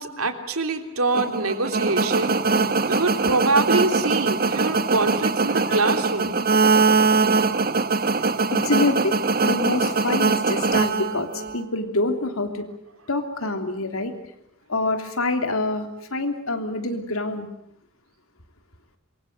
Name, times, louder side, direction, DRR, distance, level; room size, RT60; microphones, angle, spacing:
voice 1, 0.0-6.4, right 3 dB, 90° right, 6 dB, 3.2 m, -25 dB
sound 1, 1.1-11.6, right 4 dB, 45° right, 1.6 m, -22 dB
voice 2, 5.5-5.9 8.5-12.7 13.1-14.1 14.7-17.5, left 2 dB, 80° left, 6 dB, 3.3 m, -26 dB
26.5 x 23.5 x 8.0 m, 0.75 s
head